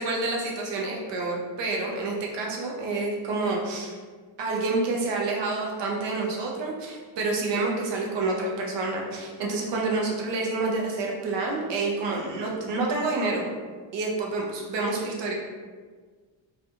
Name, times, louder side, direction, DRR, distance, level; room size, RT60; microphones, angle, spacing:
voice 1, 0.0-4.0 4.4-13.5 13.9-15.3, right 3 dB, 70° right, -1 dB, 0.7 m, -28 dB
2.4 x 2.2 x 2.8 m, 1.5 s
cardioid pair, 95°, 45 cm